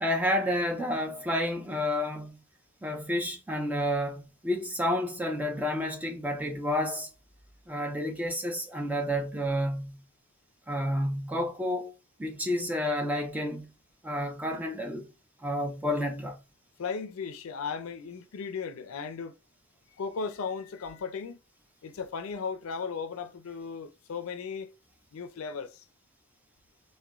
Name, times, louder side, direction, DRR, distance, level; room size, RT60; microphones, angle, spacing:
voice 1, 0.0-2.4 2.8-7.1 7.7-10.0 10.7-11.9 12.2-13.7 14.0-15.1 15.4-16.4, left 1 dB, 10° right, 0.4 m, -30 dB
voice 2, 16.8-19.3 19.9-21.4 21.8-24.7 25.1-25.8, left 5 dB, 80° left, 0.4 m, -36 dB
2.3 x 2.2 x 2.9 m
head